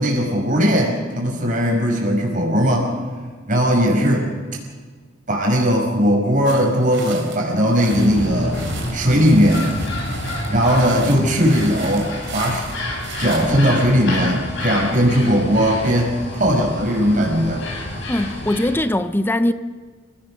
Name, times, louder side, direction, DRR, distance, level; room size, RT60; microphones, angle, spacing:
voice 1, 0.0-2.9 3.5-4.3 5.3-8.6 8.9-9.7 10.5-12.7 13.2-17.6, equal, 45° right, 5.8 m, -18 dB
sound 1, 6.5-13.5, right 6 dB, 65° right, 4.1 m, -38 dB
sound 2, 7.9-18.9, left 1 dB, 70° left, 7.9 m, -28 dB
voice 2, 18.1-19.5, left 1 dB, 10° left, 0.6 m, -20 dB
29.5 x 17.0 x 6.4 m
head